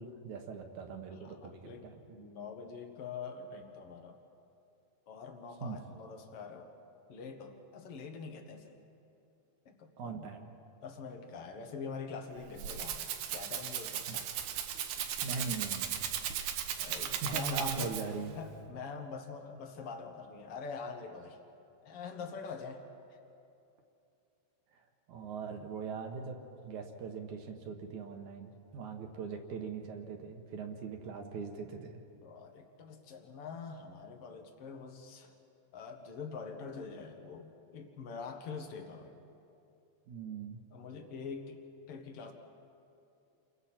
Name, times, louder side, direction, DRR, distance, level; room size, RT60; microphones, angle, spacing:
voice 1, 0.0-2.0 5.6-5.8 10.0-10.5 14.1-14.2 15.2-16.5 16.8-18.3 24.7-32.0 40.1-40.6, right 5 dB, 60° right, 4 dB, 2.2 m, -41 dB
voice 2, 1.2-4.2 5.1-6.7 7.1-8.7 9.6-10.3 10.8-14.3 16.8-18.0 18.3-21.4 21.8-22.8 23.1-23.2 32.2-35.3 35.7-39.2 40.7-42.3, left 5 dB, 70° left, 4 dB, 1.4 m, -44 dB
Rattle (instrument), 12.3-18.3, right 9 dB, 80° right, 2.8 m, -37 dB
29.5 x 23.0 x 4.4 m, 2.7 s
omnidirectional pair, 4.6 m